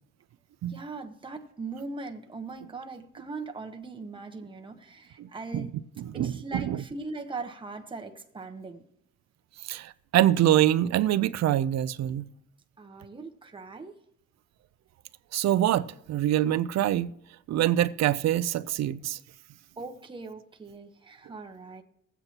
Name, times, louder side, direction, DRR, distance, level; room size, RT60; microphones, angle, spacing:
voice 1, 0.7-5.7 6.1-8.8 12.8-13.9 19.8-21.8, right 3 dB, 15° right, 1.0 m, -40 dB
voice 2, 5.2-5.7 6.0-6.8 9.6-12.3 15.3-17.1 17.5-19.2, right 12 dB, 60° right, 0.5 m, -25 dB
20.5 x 8.0 x 2.9 m
cardioid pair, 90°, 30 cm